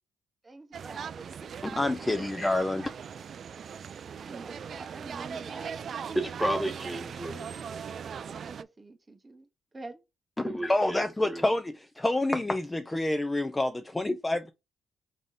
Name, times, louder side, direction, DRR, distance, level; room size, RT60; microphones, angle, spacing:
voice 1, 0.4-2.1 2.9-3.2 4.2-6.2 8.3-9.5 9.7-10.0, right 2 dB, 20° right, 0.8 m, -47 dB
sound 1, 0.7-8.6, right 7 dB, 55° right, 0.4 m, -39 dB
voice 2, 1.8-2.9 10.4-14.5, left 2 dB, 15° left, 0.5 m, -28 dB
voice 3, 6.1-7.5 10.4-11.4, right 1 dB, ahead, 1.3 m, -32 dB
3.7 x 3.5 x 4.0 m
cardioid pair, 90°, 0 cm